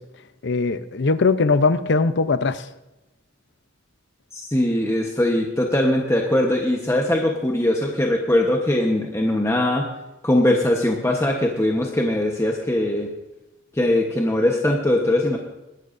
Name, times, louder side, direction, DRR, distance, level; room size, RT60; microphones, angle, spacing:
voice 1, 0.4-2.6, left 4 dB, 65° left, 13 dB, 0.7 m, -20 dB
voice 2, 4.3-9.9 10.2-13.1 13.7-15.4, left 1 dB, 15° left, 0 dB, 1.1 m, -21 dB
21.5 x 12.0 x 2.6 m, 0.98 s
head